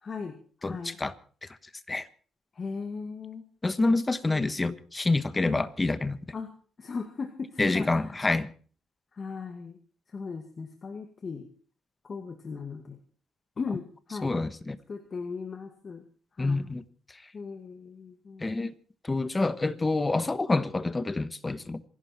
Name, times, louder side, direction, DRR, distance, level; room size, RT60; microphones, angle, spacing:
voice 1, 0.0-1.0 2.5-3.4 3.9-4.0 4.2-4.8 5.4-5.6 6.3-6.5 6.8-8.2 9.1-9.8 10.1-11.5 12.0-13.0 13.6-14.3 14.9-16.1 16.4-16.7 17.3-18.5, left 5 dB, 40° left, 2.2 m, -38 dB
voice 2, 0.6-1.1 1.4-1.5 1.9-2.1 3.6-6.2 7.6-8.5 14.2-14.8 16.4-16.8 18.4-18.7 19.0-21.8, left 2 dB, 20° left, 1.3 m, -27 dB
26.5 x 11.5 x 4.5 m
cardioid pair, 90°, 0 cm